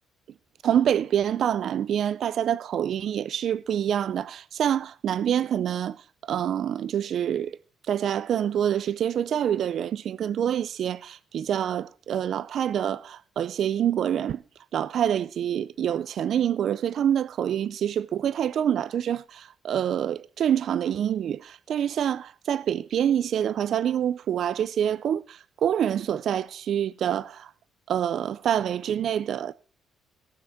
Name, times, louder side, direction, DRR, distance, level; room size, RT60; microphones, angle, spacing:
voice 1, 0.6-7.6 7.9-14.4 14.7-27.5 27.9-29.5, right 9 dB, 65° right, 0.5 m, -26 dB
18.0 x 6.3 x 4.5 m
cardioid pair, 90°, 0 cm